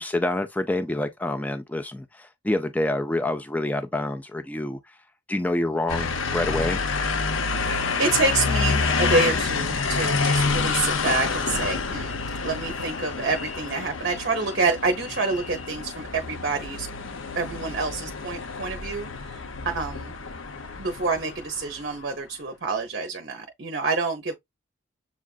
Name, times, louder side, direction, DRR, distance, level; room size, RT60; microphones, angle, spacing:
voice 1, 0.0-4.8 5.3-6.8, left 1 dB, 10° left, 0.4 m, -27 dB
sound 1, 5.9-22.0, left 4 dB, 75° left, 0.6 m, -28 dB
voice 2, 7.5-12.2 12.4-16.9 17.4-20.1 20.8-24.3, right 3 dB, 55° right, 0.7 m, -27 dB
7.2 x 2.4 x 2.3 m
head